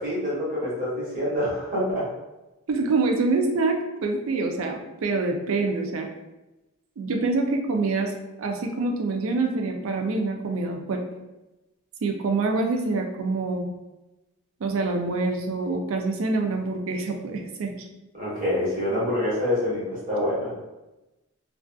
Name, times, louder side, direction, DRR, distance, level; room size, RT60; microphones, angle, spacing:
voice 1, 0.0-2.1 18.1-20.5, left 1 dB, 40° right, -8 dB, 0.9 m, -26 dB
voice 2, 2.7-6.1 7.0-8.1 8.4-11.0 12.0-13.7 14.6-17.7, right 3 dB, 75° right, 3 dB, 0.4 m, -26 dB
2.5 x 2.4 x 2.3 m, 1.0 s
head